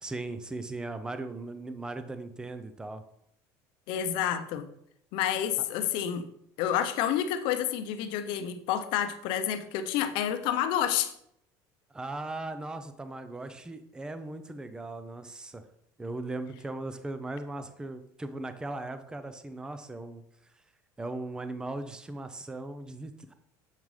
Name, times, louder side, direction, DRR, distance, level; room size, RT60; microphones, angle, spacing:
voice 1, 0.0-3.0 11.9-15.6 16.0-20.2 21.0-23.3, right 2 dB, 10° right, 9 dB, 0.5 m, -38 dB
voice 2, 3.9-4.7 5.1-6.3 6.6-11.1, left 10 dB, 70° left, 9 dB, 0.7 m, -29 dB
7.4 x 5.3 x 3.2 m, 0.71 s
cardioid pair, 140°, 9 cm